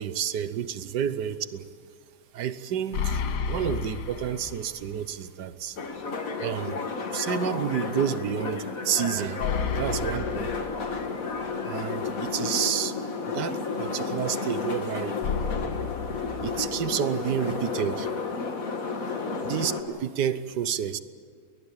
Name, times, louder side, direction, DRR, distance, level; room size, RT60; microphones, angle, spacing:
voice 1, 0.0-1.6 2.3-3.2 3.5-5.8 6.4-6.8 7.1-9.4 9.8-10.5 11.6-12.9 13.3-15.2 16.4-18.1 19.4-21.0, right 9 dB, 75° right, 13 dB, 1.5 m, -30 dB
sound 1, 2.9-5.0 5.3-5.4 9.4-11.4 15.2-17.2, left 6 dB, 70° left, 1.5 m, -32 dB
sound 2, 5.8-19.8, left 4 dB, 50° left, 2.0 m, -32 dB
21.5 x 19.5 x 8.9 m, 2.1 s
omnidirectional pair, 1.9 m